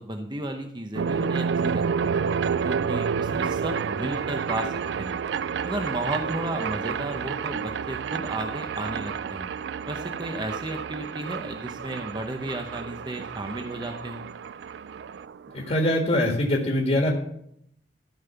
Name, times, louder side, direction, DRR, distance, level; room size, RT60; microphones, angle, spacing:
voice 1, 0.0-2.2 2.6-5.2 5.6-9.5 9.9-14.3, right 1 dB, 25° right, 4 dB, 0.8 m, -33 dB
sound 1, 1.0-15.9, right 6 dB, 75° right, 0.3 m, -30 dB
voice 2, 15.5-17.1, left 1 dB, 35° left, 0 dB, 1.6 m, -23 dB
13.5 x 5.5 x 6.9 m, 0.72 s
head